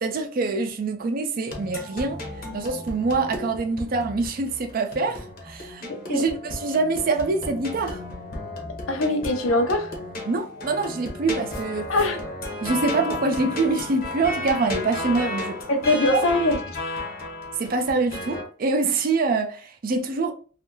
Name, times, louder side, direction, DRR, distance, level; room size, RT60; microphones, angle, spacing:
voice 1, 0.0-2.2 2.5-8.0 10.3-11.9 12.6-15.6 17.6-20.3, right 3 dB, 45° right, 0.4 m, -25 dB
sound 1, 1.5-18.4, left 2 dB, 50° left, 0.8 m, -34 dB
voice 2, 5.9-6.2 8.9-9.9 11.9-12.2 15.7-16.6 16.9-17.0, left 2 dB, 90° left, 0.6 m, -22 dB
2.6 x 2.4 x 2.8 m
head